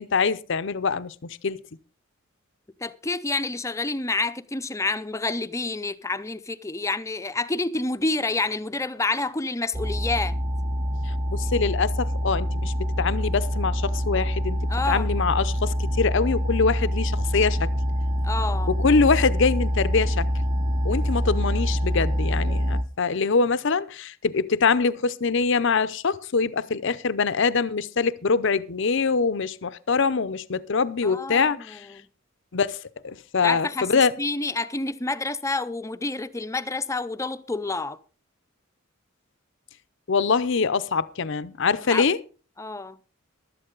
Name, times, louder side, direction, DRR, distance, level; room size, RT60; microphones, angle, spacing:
voice 1, 0.0-1.6 11.3-14.6 14.9-17.7 18.7-20.3 20.8-31.8 32.5-32.8 33.0-34.1 40.1-42.2, left 5 dB, 60° left, 0.6 m, -24 dB
voice 2, 2.8-10.4 14.7-15.1 18.2-18.7 31.0-32.1 33.4-38.0 41.9-42.1 42.6-43.0, left 3 dB, 15° left, 0.6 m, -28 dB
sound 1, 9.7-22.8, equal, 20° right, 0.8 m, -25 dB
14.5 x 12.0 x 3.9 m
head